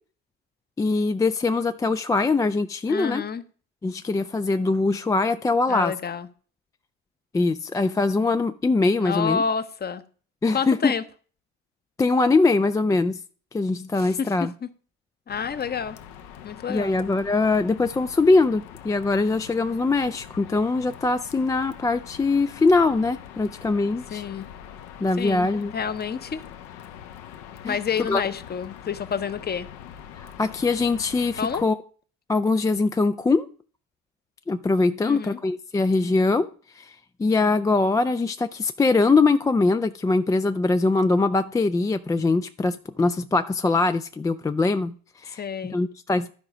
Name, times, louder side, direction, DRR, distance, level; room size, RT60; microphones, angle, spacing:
voice 1, 0.8-3.2 3.8-5.9 7.3-9.4 10.4-10.9 12.0-13.2 13.5-14.5 16.7-24.2 25.0-25.7 27.6-27.8 28.1-28.2 30.2-31.8 32.3-33.5 34.5-36.5 36.8-36.9 37.2-45.4 45.7-46.3, left 3 dB, 10° left, 0.3 m, -22 dB
voice 2, 2.9-3.4 5.7-6.3 9.0-10.0 10.5-11.0 14.0-14.7 15.3-16.0 16.4-17.0 24.1-24.5 25.2-25.5 25.7-26.4 27.6-29.7 31.4-31.6 35.0-35.4 45.3-45.8, left 6 dB, 25° left, 0.8 m, -29 dB
sound 1, 15.3-31.6, left 10 dB, 70° left, 1.0 m, -43 dB
12.5 x 4.8 x 5.0 m
hypercardioid pair, 65°, 38 cm